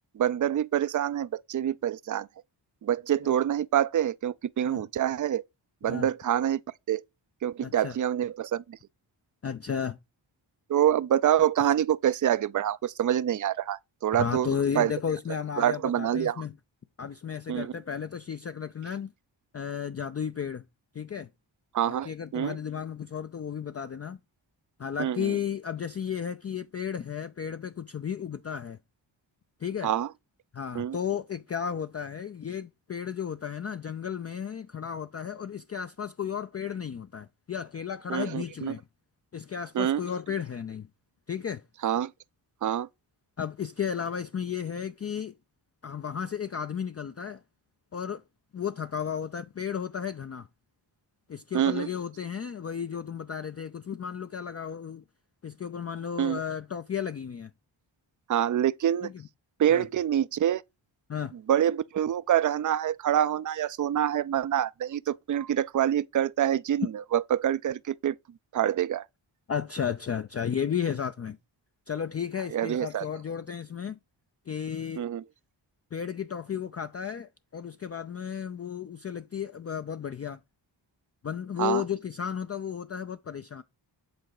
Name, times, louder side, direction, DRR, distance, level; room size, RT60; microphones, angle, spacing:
voice 1, 0.1-2.3 2.8-5.4 5.8-6.6 6.9-7.0 7.4-8.8 10.7-14.5 14.8-14.9 15.6-16.4 17.5-17.7 21.7-22.6 25.0-25.4 29.8-30.1 30.8-31.0 38.1-38.8 39.7-40.0 41.8-42.1 42.6-42.9 51.5-51.9 56.2-56.4 58.3-59.1 59.6-60.6 61.5-68.2 68.5-69.0 72.5-73.1 75.0-75.2 81.6-81.8, right 10 dB, 40° right, 0.5 m, -26 dB
voice 2, 7.6-8.0 9.4-10.0 14.1-16.5 17.0-19.1 19.5-20.6 20.9-21.3 21.9-24.2 24.8-28.8 29.6-29.9 30.5-38.8 39.3-40.9 41.3-41.6 43.4-45.3 45.8-47.4 47.9-48.2 48.5-50.5 51.3-55.0 55.4-57.5 59.0-59.3 59.7-59.9 61.1-61.3 69.5-71.4 71.9-74.0 74.5-75.1 75.9-80.4 81.2-83.6, left 8 dB, 30° left, 0.4 m, -33 dB
8.0 x 3.8 x 4.7 m
cardioid pair, 40°, 48 cm